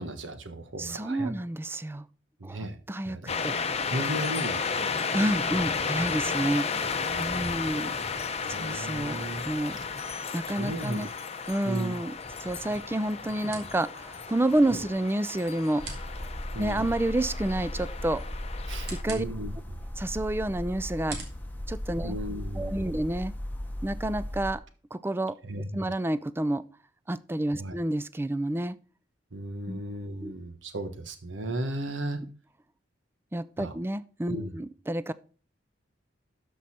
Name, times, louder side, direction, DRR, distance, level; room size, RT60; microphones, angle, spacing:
voice 1, 0.0-1.3 2.4-2.8 3.0-3.4 3.9-4.9 7.1-7.7 8.4-9.4 10.5-11.1 11.6-12.0 14.7-14.9 16.5-16.9 18.7-19.8 22.0-23.0 25.4-25.9 27.5-27.8 29.3-32.2 33.6-33.7 34.3-34.5, right 1 dB, 80° right, 8 dB, 1.4 m, -36 dB
voice 2, 0.8-2.1 2.4-3.6 5.1-6.7 7.2-8.2 8.5-9.8 10.3-11.1 11.5-12.1 12.4-16.1 16.6-18.2 18.9-19.2 20.0-21.2 21.7-22.2 22.6-23.3 23.8-24.6 24.9-25.4 25.7-26.6 27.1-28.8 29.7-29.8 30.2-30.3 33.3-35.1, right 1 dB, 10° right, 16 dB, 0.4 m, -29 dB
sound 1, 3.3-19.0, left 5 dB, 35° left, 0.8 m, -33 dB
sound 2, 11.7-22.7, right 4 dB, 60° right, 2.6 m, -49 dB
sound 3, 15.8-24.5, left 1 dB, 10° left, 1.1 m, -36 dB
12.5 x 5.4 x 4.3 m, 0.39 s
head